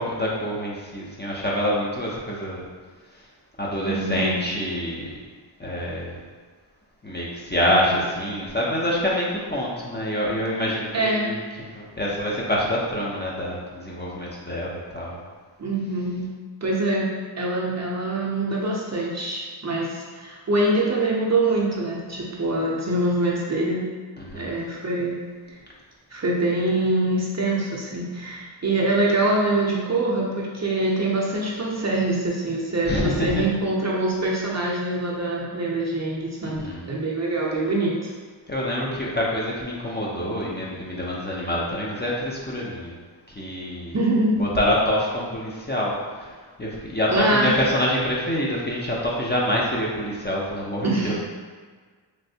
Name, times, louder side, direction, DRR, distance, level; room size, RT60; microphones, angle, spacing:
voice 1, 0.0-2.6 3.1-3.2 3.6-5.2 5.6-6.2 7.0-15.2 24.2-24.5 32.9-33.4 36.4-36.9 38.5-42.9 43.3-44.0 44.4-51.1, equal, 25° left, -5 dB, 0.5 m, -26 dB
voice 2, 3.8-4.6 7.7-8.0 10.9-11.3 15.6-16.3 16.6-17.1 17.4-23.8 24.3-25.2 25.5-25.6 26.1-38.1 43.9-44.4 47.1-47.5 50.8-51.1, right 2 dB, 35° right, -4 dB, 0.5 m, -24 dB
3.2 x 2.6 x 2.7 m, 1.5 s
wide cardioid pair, 85°, 47 cm